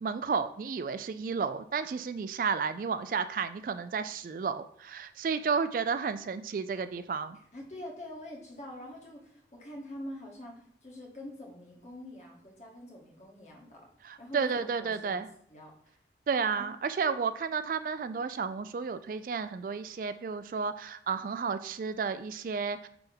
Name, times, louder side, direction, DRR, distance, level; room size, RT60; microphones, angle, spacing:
voice 1, 0.0-7.4 14.0-15.3 16.3-22.9, right 5 dB, 50° right, 12 dB, 0.3 m, -32 dB
voice 2, 7.5-13.8 14.2-15.2 15.5-16.0 16.6-16.7, left 1 dB, 40° left, -2 dB, 1.8 m, -45 dB
9.6 x 3.5 x 3.5 m, 0.69 s
head